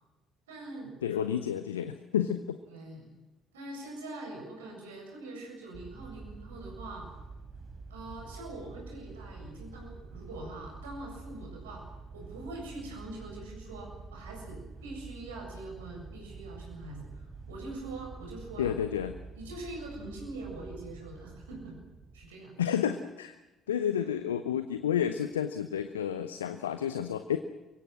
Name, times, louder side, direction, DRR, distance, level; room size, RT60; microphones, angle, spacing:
voice 1, 0.5-1.0 2.6-3.1 3.5-7.1 7.9-11.8 12.1-18.7 19.3-21.8 22.1-22.6 24.0-24.1, right 2 dB, 75° right, 0 dB, 7.6 m, -43 dB
voice 2, 1.0-2.6 18.6-19.1 22.6-23.4 23.7-27.4, left 9 dB, 80° left, 10 dB, 0.8 m, -30 dB
sound 1, 5.7-22.3, right 4 dB, 35° right, 5.5 m, -47 dB
28.5 x 24.0 x 6.3 m, 1.1 s
figure-of-eight pair, 50°, 0 cm